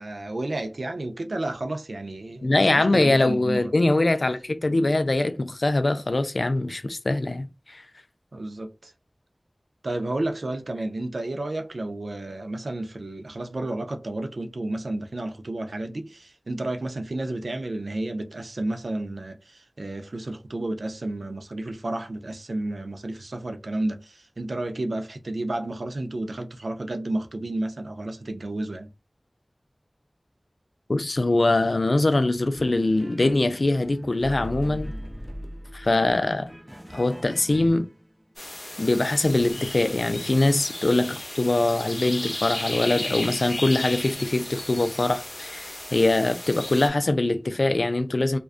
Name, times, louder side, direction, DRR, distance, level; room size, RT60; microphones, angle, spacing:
voice 1, 0.0-3.7 8.3-8.9 9.8-28.9, right 2 dB, 85° right, 0.3 m, -31 dB
voice 2, 2.4-7.8 30.9-34.9 35.7-36.5 36.9-37.9 38.8-48.4, left 2 dB, 70° left, 0.3 m, -23 dB
sound 1, 32.5-38.3, equal, 10° right, 0.5 m, -39 dB
sound 2, 38.4-46.9, left 1 dB, 45° left, 0.7 m, -35 dB
2.4 x 2.2 x 2.4 m
wide cardioid pair, 40°, 0 cm